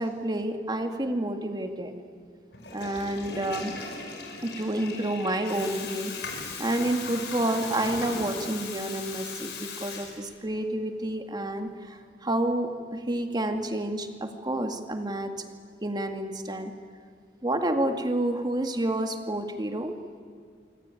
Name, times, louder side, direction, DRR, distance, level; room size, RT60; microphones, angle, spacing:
voice 1, 0.0-1.9 2.7-3.7 4.4-6.1 6.6-15.5 15.8-16.7 17.4-20.0, right 1 dB, 25° right, 6 dB, 2.1 m, -29 dB
Water tap faucet / Toilet flush, 2.5-10.6, left 4 dB, 70° left, 6.0 m, -38 dB
26.0 x 25.0 x 9.2 m, 2.2 s
head